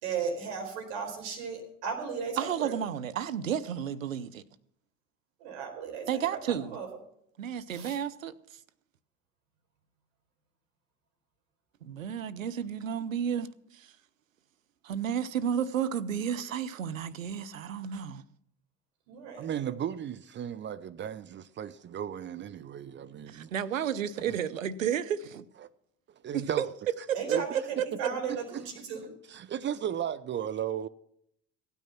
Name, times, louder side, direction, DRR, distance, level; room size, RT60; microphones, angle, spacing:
voice 1, 0.0-2.8 5.4-6.1 6.5-6.9 7.7-8.0 19.1-19.5 27.1-27.5 28.0-29.0, right 6 dB, 65° right, 4.6 m, -36 dB
voice 2, 2.4-4.4 6.1-6.8 7.4-8.6 11.8-13.9 14.8-18.2 23.3-25.4 26.3-26.7 27.1-28.1, right 8 dB, 85° right, 0.8 m, -32 dB
voice 3, 19.4-23.5 24.2-24.4 25.6-25.7 26.2-26.7 27.3-27.5 28.5-28.6 29.3-30.9, right 9 dB, 30° right, 0.6 m, -35 dB
16.0 x 9.3 x 5.9 m
hypercardioid pair, 70°, 38 cm